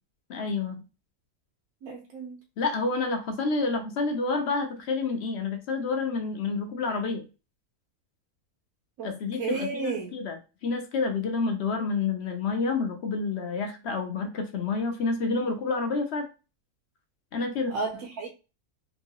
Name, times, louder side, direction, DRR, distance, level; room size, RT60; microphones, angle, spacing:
voice 1, 0.3-0.8 2.6-7.2 9.0-16.3 17.3-17.7, left 4 dB, 60° left, 5 dB, 0.7 m, -29 dB
voice 2, 1.8-2.4 9.0-9.1 9.4-10.1 17.7-18.3, right 3 dB, 70° right, 0 dB, 1.0 m, -32 dB
3.0 x 2.8 x 2.7 m, 0.32 s
omnidirectional pair, 1.6 m